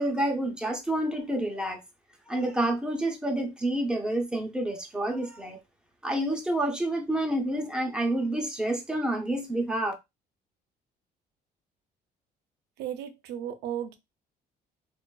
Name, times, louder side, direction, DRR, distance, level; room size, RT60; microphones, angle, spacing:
voice 1, 0.0-1.8 2.3-5.6 6.0-9.9, right 1 dB, 5° right, 0.6 m, -28 dB
voice 2, 12.8-14.0, right 10 dB, 85° right, 0.5 m, -35 dB
2.5 x 2.3 x 2.2 m
cardioid pair, 110°, 17 cm